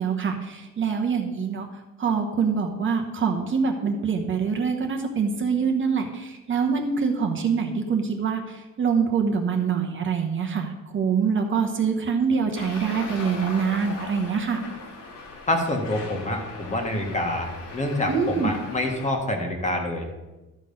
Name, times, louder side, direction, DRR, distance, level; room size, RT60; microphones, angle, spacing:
voice 1, 0.0-1.7 2.0-14.6 18.1-18.5, right 6 dB, 35° right, 3 dB, 1.0 m, -25 dB
Traffic noise roadway noise, 12.5-19.1, left 3 dB, 75° left, 2.6 m, -39 dB
voice 2, 15.5-20.1, left 1 dB, 20° left, 2 dB, 1.6 m, -27 dB
13.0 x 6.1 x 5.4 m, 1.1 s
cardioid pair, 155°, 33 cm